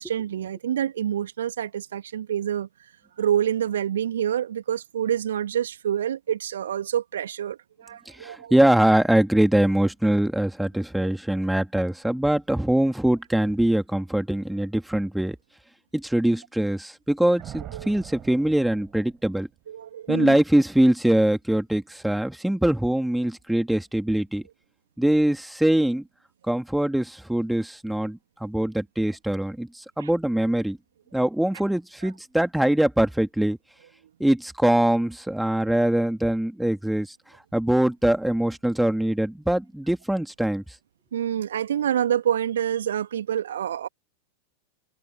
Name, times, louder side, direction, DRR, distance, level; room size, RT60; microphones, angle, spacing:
voice 1, 0.0-2.7 3.2-8.5 17.7-17.9 19.7-20.4 30.0-30.1 41.1-43.9, right 10 dB, 65° right, 2.3 m, -27 dB
voice 2, 8.1-15.4 15.9-19.5 20.1-24.4 25.0-26.1 26.5-30.8 31.1-33.6 34.2-37.1 37.5-40.6, right 1 dB, 5° right, 2.9 m, -23 dB
Thunder, 17.4-19.6, right 12 dB, 30° right, 7.9 m, -43 dB
figure-of-eight pair, 90°, 0 cm